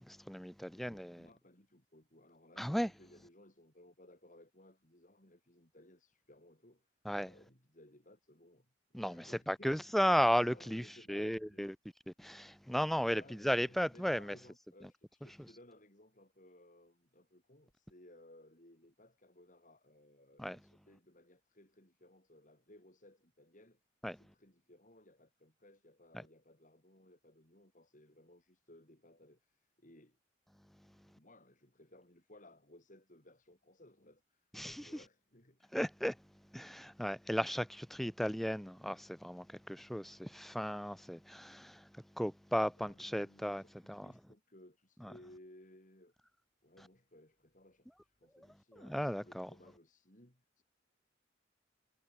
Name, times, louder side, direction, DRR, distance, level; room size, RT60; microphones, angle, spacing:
voice 1, 0.1-1.3 2.6-2.9 7.1-7.3 8.9-11.7 12.1-14.4 20.4-20.6 24.0-24.2 34.5-34.8 35.7-36.2 36.5-41.9 42.2-43.6 43.9-44.1 45.0-45.1 48.8-49.5, equal, ahead, 0.3 m, -35 dB
voice 2, 0.7-6.9 7.2-10.0 10.4-11.6 13.1-23.8 24.1-30.2 31.2-35.8 42.8-46.1 46.6-50.6, left 1 dB, 45° left, 6.4 m, -61 dB
head